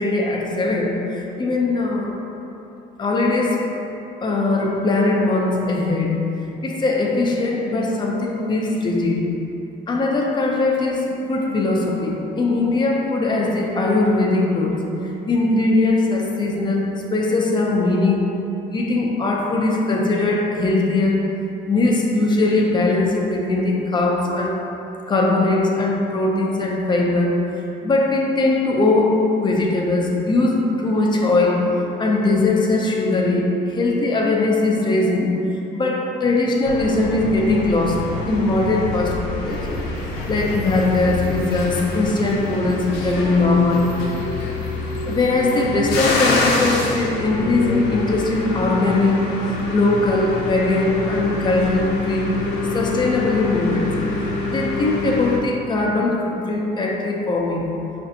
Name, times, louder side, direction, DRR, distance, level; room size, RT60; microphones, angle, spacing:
voice 1, 0.0-2.2 3.0-3.8 4.2-9.4 9.9-14.9 15.3-18.3 18.7-21.3 21.6-24.7 25.1-35.4 35.7-39.8 40.3-44.0 45.1-52.4 52.7-54.0 54.5-57.8, left 2 dB, 25° left, -1 dB, 0.5 m, -20 dB
sound 1, 36.6-55.4, left 2 dB, 85° left, 0.5 m, -26 dB
5.4 x 2.5 x 2.6 m, 2.9 s
cardioid pair, 110°, 17 cm